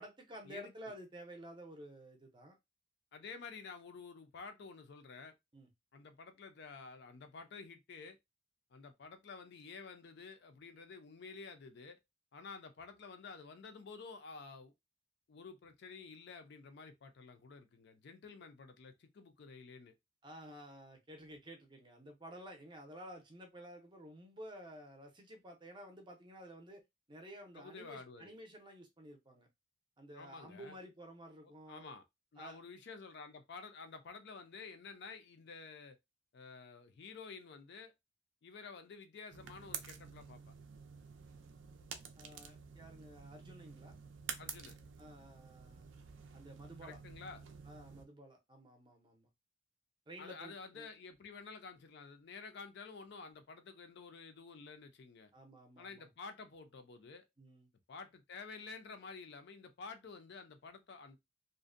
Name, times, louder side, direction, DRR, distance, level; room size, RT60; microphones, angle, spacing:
voice 1, 0.0-2.6 5.5-5.7 20.2-26.8 27.1-29.5 30.0-31.9 32.4-32.6 42.2-44.0 45.0-46.0 46.3-47.0 47.6-49.3 50.1-50.9 55.3-56.1 57.4-57.7, equal, 25° right, 0.5 m, -52 dB
voice 2, 3.1-5.3 5.9-8.2 8.7-12.0 12.3-14.7 15.3-19.9 27.5-28.3 30.1-30.7 31.7-32.0 32.3-36.0 36.3-37.9 38.4-40.5 44.4-44.7 46.8-47.4 50.2-55.3 55.8-57.2 57.9-61.2, left 4 dB, 60° left, 0.4 m, -51 dB
sound 1, 39.3-48.0, right 7 dB, 70° right, 0.4 m, -50 dB
2.5 x 2.0 x 2.5 m
head